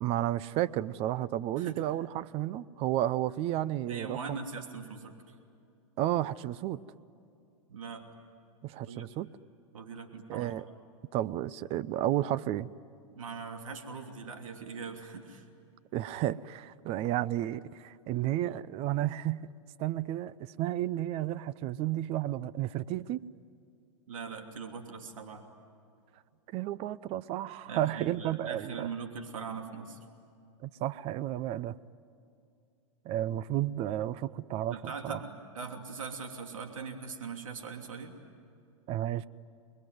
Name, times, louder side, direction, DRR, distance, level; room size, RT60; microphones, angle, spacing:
voice 1, 0.0-4.4 6.0-6.8 8.6-9.3 10.3-10.6 11.1-12.7 15.9-19.5 19.8-23.2 26.5-28.9 30.6-31.8 33.0-35.2 38.9-39.3, right 13 dB, 35° right, 17 dB, 0.7 m, -32 dB
voice 2, 3.9-5.1 7.7-8.0 8.9-9.1 9.7-10.5 13.1-15.4 24.1-25.4 27.7-30.0 34.7-38.1, right 5 dB, 80° right, 4 dB, 3.0 m, -41 dB
29.5 x 21.5 x 9.4 m, 2.5 s
hypercardioid pair, 120°, 17 cm